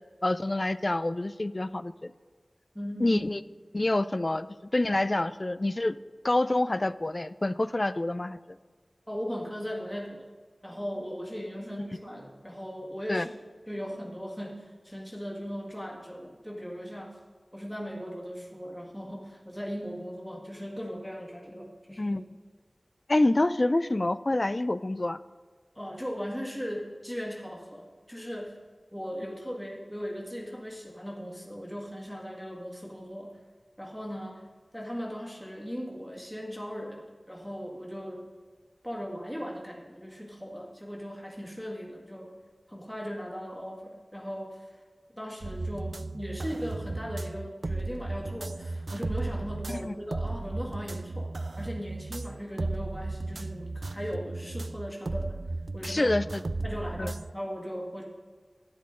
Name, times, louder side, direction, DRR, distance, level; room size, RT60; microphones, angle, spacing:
voice 1, 0.2-2.1 3.0-3.4 3.7-4.5 4.7-6.0 6.2-8.4 13.1-13.2 22.0-22.2 23.1-25.2 49.8-49.9 55.8-56.4 57.0-57.1, left 2 dB, 45° left, 15 dB, 0.4 m, -27 dB
voice 2, 2.7-3.3 9.1-10.2 10.6-13.3 13.7-17.2 17.5-22.2 25.8-28.7 28.9-33.4 33.8-34.5 34.7-38.3 38.8-42.4 42.7-44.8 45.1-51.3 51.6-55.4 55.7-56.2 56.6-58.0, equal, 5° left, -2 dB, 1.7 m, -38 dB
sound 1, 45.4-57.3, right 2 dB, 80° right, 0.3 m, -35 dB
12.0 x 9.8 x 3.7 m, 1.5 s
wide cardioid pair, 50°, 0 cm